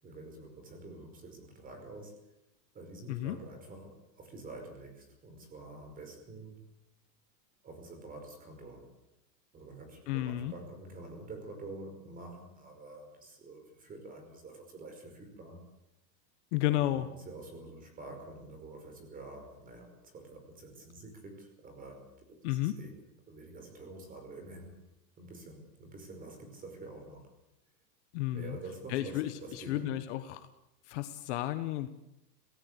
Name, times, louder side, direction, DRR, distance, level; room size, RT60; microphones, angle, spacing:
voice 1, 0.0-2.1 2.7-6.6 7.6-8.9 9.5-15.6 16.6-22.9 23.3-24.7 25.2-27.3 28.3-29.9, right 2 dB, 15° right, 5 dB, 5.3 m, -47 dB
voice 2, 10.1-10.5 16.5-17.1 22.4-22.7 28.1-28.6 28.9-30.4 30.9-31.9, left 14 dB, 45° left, 10 dB, 1.3 m, -32 dB
24.5 x 17.5 x 8.3 m, 0.86 s
supercardioid pair, 165°, 49 cm